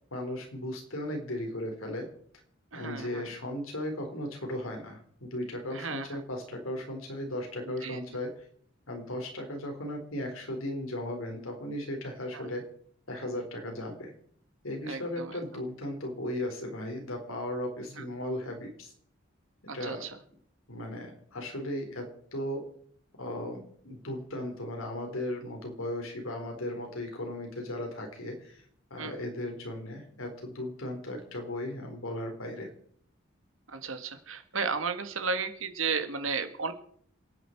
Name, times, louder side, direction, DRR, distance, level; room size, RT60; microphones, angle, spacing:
voice 1, 0.1-2.1 2.7-8.3 8.9-12.6 13.1-14.1 14.6-18.9 19.6-20.1 20.7-22.6 23.2-28.6 28.9-32.7, left 1 dB, 85° left, 3 dB, 4.1 m, -36 dB
voice 2, 2.7-3.3 5.7-6.2 7.7-8.0 12.3-12.5 14.9-15.4 18.0-18.1 19.7-20.1 29.0-29.2 33.7-36.7, right 5 dB, 80° right, 8 dB, 1.8 m, -34 dB
27.5 x 9.3 x 4.6 m, 0.63 s
head